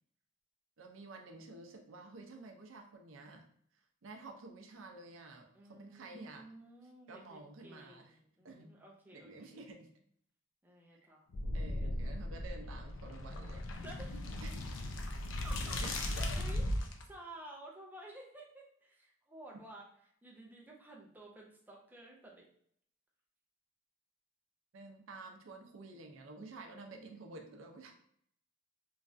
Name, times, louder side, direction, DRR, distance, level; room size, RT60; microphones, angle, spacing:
voice 1, 0.8-3.4 4.0-6.4 7.1-8.2 8.4-8.7 9.1-9.9 11.5-13.7 14.4-14.6 15.8-16.4 24.7-27.9, right 2 dB, 80° right, 3 dB, 0.5 m, -50 dB
voice 2, 5.5-9.6 10.6-11.3 13.8-14.3 15.4-19.8 20.2-22.4 26.4-27.2, right 1 dB, 10° right, -3 dB, 0.5 m, -53 dB
sound 1, 11.3-17.0, left 1 dB, 70° left, 0.4 m, -37 dB
3.1 x 2.4 x 2.5 m, 0.66 s
head